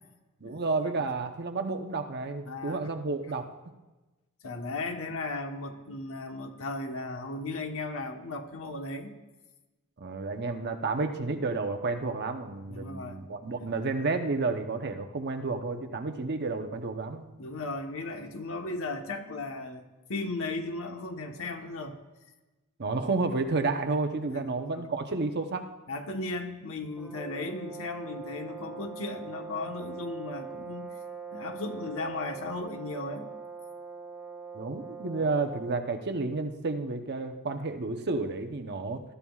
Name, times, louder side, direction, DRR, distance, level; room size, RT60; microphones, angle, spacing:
voice 1, 0.4-3.5 10.0-17.3 22.8-25.6 34.5-39.0, right 3 dB, 50° right, 5 dB, 0.9 m, -31 dB
voice 2, 2.4-2.9 4.4-9.1 12.7-13.2 13.5-13.7 17.4-22.0 24.3-24.9 25.9-31.0 31.3-33.3 35.2-35.3, left 2 dB, 65° left, 5 dB, 1.2 m, -36 dB
sound 1, 27.0-35.9, right 5 dB, ahead, 0.8 m, -42 dB
21.0 x 12.5 x 2.4 m, 1.1 s
head